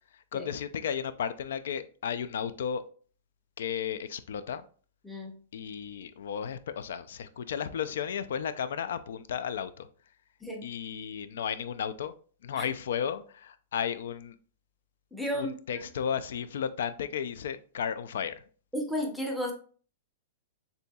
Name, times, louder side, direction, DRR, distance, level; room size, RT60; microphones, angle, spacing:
voice 1, 0.3-2.8 3.6-4.6 5.5-9.9 10.6-12.1 12.4-14.3 15.3-18.4, left 8 dB, 70° left, 13 dB, 0.4 m, -34 dB
voice 2, 5.0-5.3 10.4-10.7 12.6-12.7 15.1-15.8 18.7-19.5, equal, ahead, 1 dB, 0.6 m, -33 dB
6.8 x 2.7 x 2.3 m, 0.42 s
supercardioid pair, 175°, 0 cm